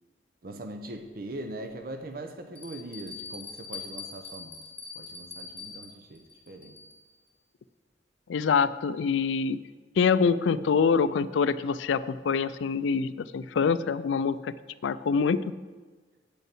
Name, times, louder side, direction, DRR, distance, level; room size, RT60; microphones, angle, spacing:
voice 1, 0.4-4.6 4.9-6.8, right 1 dB, 50° right, 6 dB, 0.6 m, -41 dB
Bell, 0.9-1.0 1.7-1.8 2.6-7.1, left 4 dB, 10° left, 1.3 m, -43 dB
voice 2, 8.3-9.6 10.0-14.5 14.8-15.4, left 5 dB, 80° left, 15 dB, 0.4 m, -25 dB
8.5 x 5.5 x 7.5 m, 1.4 s
head